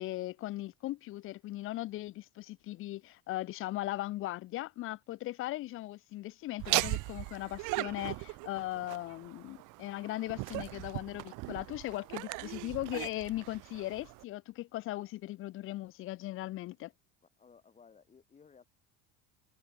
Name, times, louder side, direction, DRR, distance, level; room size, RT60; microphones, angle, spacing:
voice 1, 0.0-16.9, left 16 dB, 40° left, 0.6 m, -38 dB
Laughter, 6.6-14.2, right 24 dB, 65° right, 1.6 m, -38 dB
voice 2, 17.2-18.7, left 6 dB, 20° left, 6.8 m, -59 dB
cardioid pair, 155°, 33 cm